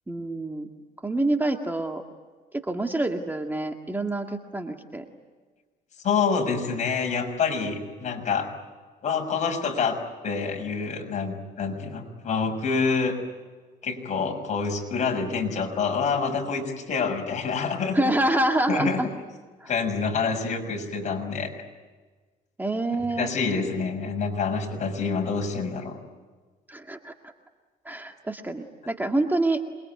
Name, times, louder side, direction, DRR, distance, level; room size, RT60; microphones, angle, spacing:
voice 1, 0.1-0.7 1.0-2.0 2.5-5.1 17.9-19.1 19.6-19.7 22.6-23.3 26.7-27.1 27.9-29.6, right 2 dB, 10° right, 4 dB, 1.9 m, -26 dB
voice 2, 6.0-8.5 9.0-9.9 10.2-13.2 13.8-18.1 18.7-19.0 19.7-21.5 23.2-26.0, left 5 dB, 45° left, 4 dB, 6.4 m, -27 dB
27.5 x 23.0 x 9.4 m, 1.4 s
cardioid pair, 110°, 17 cm